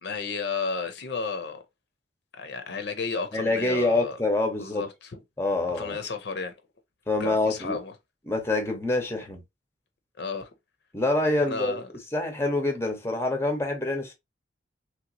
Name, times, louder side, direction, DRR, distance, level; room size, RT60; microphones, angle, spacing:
voice 1, 0.0-1.6 2.4-4.2 4.6-5.2 5.7-6.5 7.2-7.9 10.2-10.5 11.5-11.9, left 4 dB, 60° left, 0.6 m, -32 dB
voice 2, 3.3-4.8 5.4-6.0 7.1-7.8 8.3-9.4 10.9-11.8 12.1-14.1, left 2 dB, 15° left, 0.6 m, -26 dB
3.2 x 2.9 x 2.6 m
head